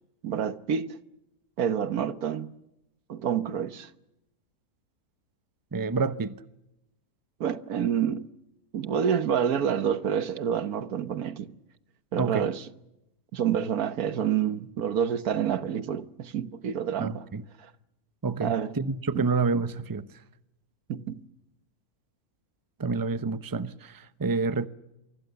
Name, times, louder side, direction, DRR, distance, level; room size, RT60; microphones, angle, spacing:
voice 1, 0.2-1.0 1.6-2.5 3.1-3.9 7.4-8.2 8.7-11.5 12.1-12.6 13.3-17.3 17.6-17.7 18.4-18.7 19.1-19.3 20.9-21.2, right 8 dB, 85° right, 1.6 m, -28 dB
voice 2, 5.7-6.3 12.2-12.5 17.0-17.4 18.2-20.1 22.8-24.7, right 4 dB, 20° right, 0.7 m, -28 dB
28.0 x 24.0 x 7.0 m
omnidirectional pair, 1.5 m